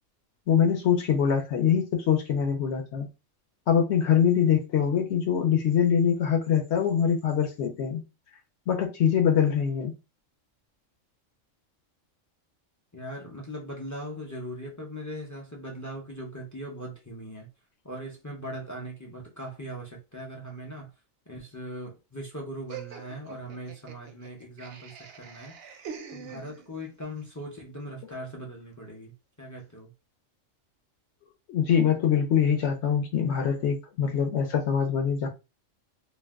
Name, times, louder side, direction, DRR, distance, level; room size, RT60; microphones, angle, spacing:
voice 1, 0.5-3.1 3.7-8.0 8.7-9.9 31.5-35.3, left 8 dB, 65° left, 0.8 m, -24 dB
voice 2, 12.9-17.5 17.8-20.9 21.3-25.5 26.1-29.1 29.4-29.9, equal, 30° left, 0.3 m, -39 dB
Laughter, 22.7-26.9, right 7 dB, 60° right, 0.7 m, -44 dB
2.5 x 2.1 x 3.4 m
omnidirectional pair, 1.4 m